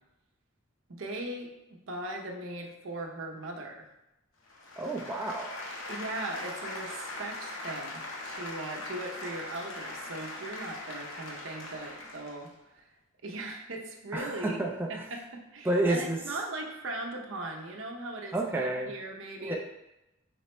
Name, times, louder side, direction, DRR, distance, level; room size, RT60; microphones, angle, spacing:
voice 1, 0.9-3.9 5.9-12.9 13.2-14.6 14.9-19.6, right 2 dB, 70° right, 1 dB, 0.7 m, -39 dB
sound 1, 4.5-12.5, left 2 dB, 70° left, 0.8 m, -41 dB
voice 2, 4.8-5.5 14.1-15.0 15.6-16.2 18.3-18.9 19.4-19.6, right 1 dB, 10° right, 0 dB, 0.3 m, -30 dB
5.0 x 3.2 x 3.0 m, 0.93 s
head